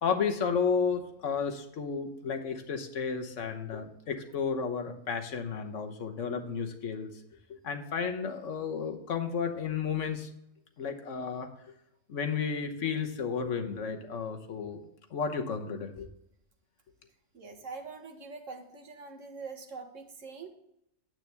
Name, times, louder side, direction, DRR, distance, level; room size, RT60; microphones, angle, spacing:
voice 1, 0.0-7.1 7.6-10.3 10.8-11.5 12.1-14.8 15.1-16.1, left 6 dB, 60° left, 5 dB, 1.4 m, -32 dB
voice 2, 17.3-20.5, right 4 dB, 60° right, 5 dB, 1.6 m, -44 dB
9.3 x 8.7 x 3.4 m, 0.79 s
omnidirectional pair, 1.5 m